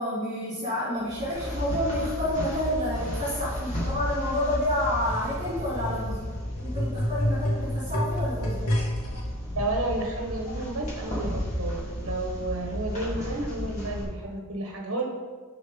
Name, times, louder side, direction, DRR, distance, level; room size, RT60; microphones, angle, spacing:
voice 1, 0.0-6.2 6.6-8.6, left 1 dB, 25° right, -8 dB, 3.0 m, -29 dB
sound 1, 1.0-14.0, equal, 30° left, 3.1 m, -33 dB
sound 2, 4.8-9.2 10.0-10.1, equal, 80° left, 1.9 m, -30 dB
voice 2, 9.5-15.0, right 2 dB, 60° right, 1 dB, 1.3 m, -31 dB
11.5 x 4.7 x 5.1 m, 1.5 s
head